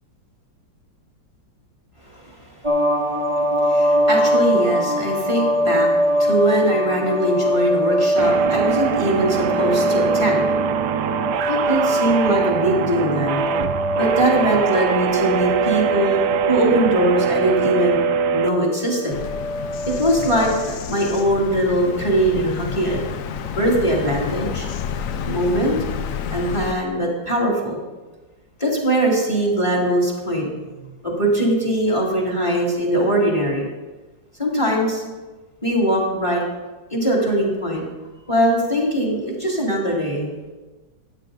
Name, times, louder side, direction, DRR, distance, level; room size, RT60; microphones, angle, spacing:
voice 1, 2.0-2.4 3.4-10.5 11.5-13.4 14.0-16.2 16.5-18.0 18.3-19.2 19.9-24.7 25.2-25.8 26.3-27.8 28.6-30.5 31.0-33.6 34.4-35.0 35.6-36.4 36.9-37.8 38.3-40.3, right 1 dB, 15° left, -3 dB, 2.6 m, -21 dB
sound 1, 2.6-20.7, equal, 30° right, 0.5 m, -23 dB
sound 2, 8.2-18.5, right 8 dB, 70° right, 1.2 m, -23 dB
Bird vocalization bird call bird song, 19.1-26.7, left 7 dB, 70° left, 0.8 m, -30 dB
13.0 x 9.5 x 3.9 m, 1.2 s
omnidirectional pair, 2.0 m